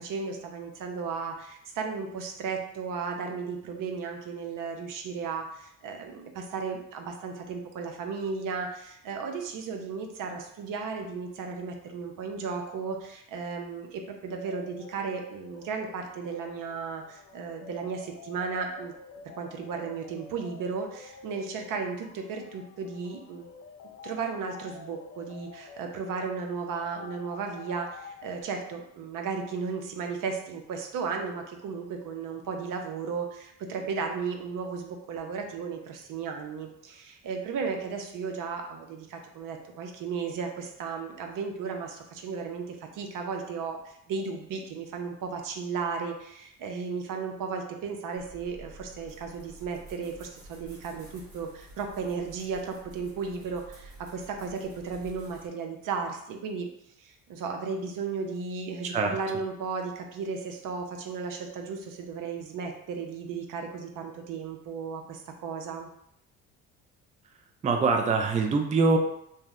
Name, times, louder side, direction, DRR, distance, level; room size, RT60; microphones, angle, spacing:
voice 1, 0.0-18.9 19.4-23.5 24.0-56.7 57.0-65.9, right 5 dB, 65° right, 3 dB, 0.6 m, -35 dB
sound 1, 14.4-28.4, left 6 dB, 45° left, 0.4 m, -49 dB
sound 2, 48.1-55.5, right 1 dB, 40° right, 1.4 m, -50 dB
voice 2, 58.8-59.2 67.6-69.0, right 4 dB, 20° right, 4 dB, 0.4 m, -24 dB
2.8 x 2.0 x 3.5 m, 0.75 s
supercardioid pair, 75°, 34 cm